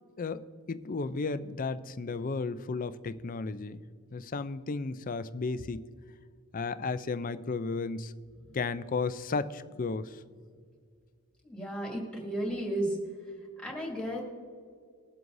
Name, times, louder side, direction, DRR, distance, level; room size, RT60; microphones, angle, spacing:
voice 1, 0.7-3.8 4.1-5.8 6.5-8.1 8.5-10.2, left 4 dB, 40° left, 13 dB, 0.4 m, -33 dB
voice 2, 11.4-13.0 13.6-14.2, right 1 dB, 5° left, -3 dB, 2.4 m, -33 dB
21.0 x 7.8 x 2.7 m, 2.1 s
head